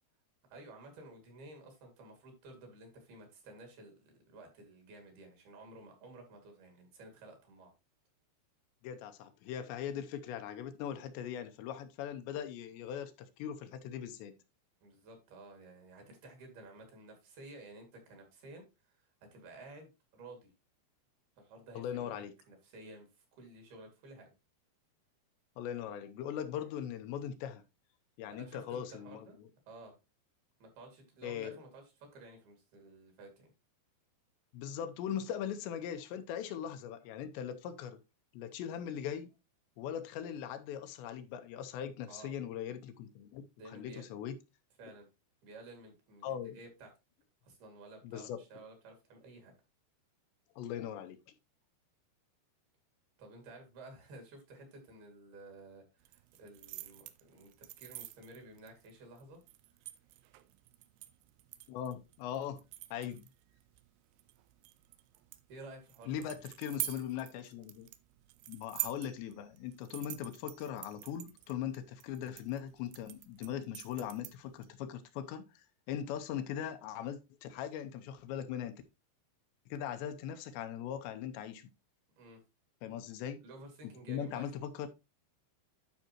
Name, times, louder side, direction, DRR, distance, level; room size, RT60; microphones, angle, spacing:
voice 1, 0.5-7.7 14.8-20.5 21.4-24.3 28.3-29.4 29.7-29.9 30.6-33.5 42.1-42.4 43.6-44.1 44.8-45.1 45.4-46.9 47.4-49.5 53.2-59.4 65.5-66.2 82.2-82.4 83.4-84.5, right 2 dB, 60° right, 4.2 m, -53 dB
voice 2, 8.8-14.4 21.8-22.3 25.6-27.6 28.2-29.3 31.2-31.5 34.5-38.0 38.3-39.3 39.8-44.4 46.2-46.6 48.0-48.4 50.6-51.2 61.7-62.6 62.9-63.2 66.1-67.9 68.5-78.7 79.7-81.7 82.8-83.4 84.1-84.9, left 9 dB, 80° left, 3.0 m, -40 dB
sound 1, 56.0-74.7, right 16 dB, 85° right, 2.5 m, -47 dB
12.0 x 5.5 x 3.0 m
omnidirectional pair, 5.1 m